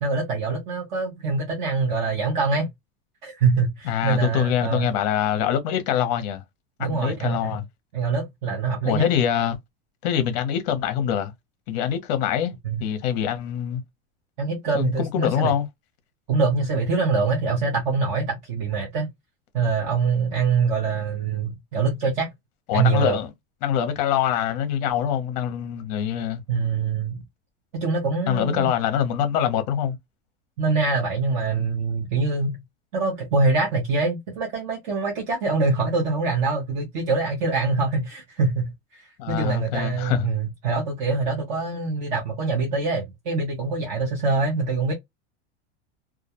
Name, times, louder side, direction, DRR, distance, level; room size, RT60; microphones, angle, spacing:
voice 1, 0.0-2.7 3.2-4.9 6.8-7.6 7.9-9.1 12.6-12.8 14.4-15.5 16.3-19.1 19.5-22.3 22.7-23.2 26.5-27.2 27.7-28.7 30.6-32.6 32.9-44.9, right 4 dB, 20° right, 0.4 m, -24 dB
voice 2, 3.8-6.4 6.8-7.6 8.8-9.6 10.0-11.3 11.7-12.5 12.8-13.8 14.7-15.6 22.7-23.3 23.6-26.4 28.3-30.0 39.2-40.3, left 9 dB, 40° left, 0.6 m, -24 dB
2.3 x 2.1 x 2.7 m
supercardioid pair, 175°, 32 cm